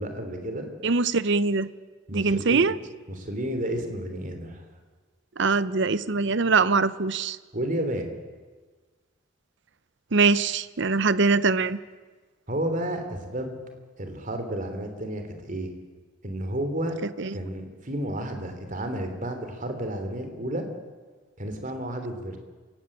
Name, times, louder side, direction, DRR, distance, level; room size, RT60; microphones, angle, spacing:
voice 1, 0.0-0.7 2.1-2.7 3.1-4.6 7.5-8.1 12.5-13.6 14.0-15.7 16.2-17.0 17.3-20.7 21.4-22.4, right 1 dB, 40° right, 6 dB, 3.2 m, -31 dB
voice 2, 0.8-1.7 2.1-2.7 5.4-7.4 10.1-11.8 17.2-17.3, right 4 dB, 60° right, 16 dB, 0.8 m, -22 dB
27.5 x 17.0 x 8.8 m, 1.4 s
head